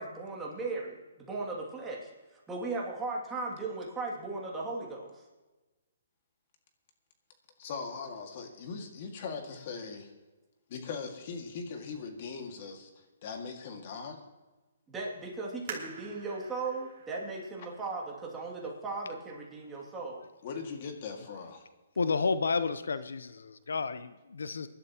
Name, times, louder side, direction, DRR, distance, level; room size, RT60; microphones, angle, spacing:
voice 1, 0.0-2.1 2.5-5.1 14.9-20.2, right 3 dB, 10° right, -3 dB, 2.5 m, -37 dB
voice 2, 7.6-10.1 10.7-14.2 20.4-21.6, left 5 dB, 40° left, 4 dB, 2.0 m, -40 dB
sound 1, 15.7-19.0 19.6-19.7 20.4-20.7 21.1-21.2, right 5 dB, 45° right, 3.1 m, -47 dB
voice 3, 22.0-24.7, left 4 dB, 90° left, 12 dB, 0.7 m, -31 dB
23.5 x 11.5 x 3.0 m, 1.2 s
hypercardioid pair, 160°, 0 cm